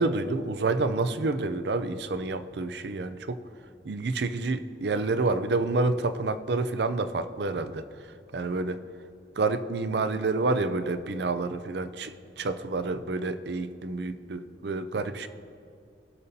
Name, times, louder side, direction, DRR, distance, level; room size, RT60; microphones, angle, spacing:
voice 1, 0.0-3.4 3.8-7.8 8.3-8.8 9.4-15.3, right 3 dB, 75° right, 11 dB, 0.5 m, -28 dB
19.5 x 6.8 x 2.8 m, 2.4 s
head